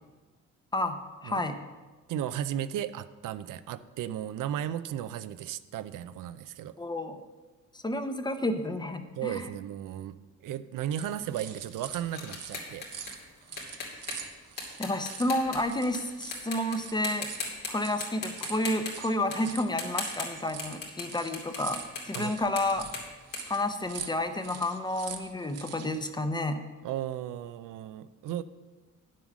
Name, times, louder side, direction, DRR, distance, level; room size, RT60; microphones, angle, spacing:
voice 1, 0.7-1.6 6.8-7.2 7.7-9.5 14.8-17.3 17.7-22.9 23.5-26.7, left 1 dB, 15° left, 8 dB, 0.7 m, -30 dB
voice 2, 2.1-6.7 9.2-10.2 10.4-12.8 22.1-22.3 26.8-28.4, right 11 dB, 90° right, 13 dB, 0.5 m, -35 dB
sound 1, 10.9-26.1, right 7 dB, 55° right, 0.9 m, -45 dB
sound 2, 11.1-16.0 16.3-16.8 17.0-17.7 18.0-21.1 21.3-24.3, left 4 dB, 80° left, 2.6 m, -39 dB
9.7 x 7.6 x 6.1 m, 1.3 s
cardioid pair, 135°, 31 cm